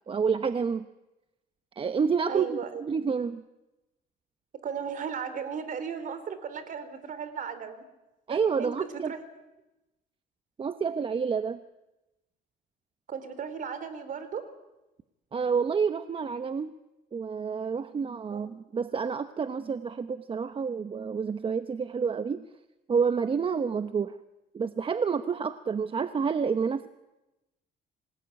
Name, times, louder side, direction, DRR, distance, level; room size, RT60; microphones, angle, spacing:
voice 1, 0.1-0.8 1.8-3.4 8.3-9.1 10.6-11.6 15.3-16.7 17.1-22.4 22.9-24.1 24.5-26.9, right 6 dB, 30° right, 10 dB, 1.0 m, -29 dB
voice 2, 2.3-2.8 4.6-7.8 8.3-9.2 13.1-14.4 18.3-18.4, right 7 dB, 50° right, 12 dB, 3.7 m, -36 dB
27.0 x 19.5 x 9.3 m, 0.98 s
cardioid pair, 110°, 17 cm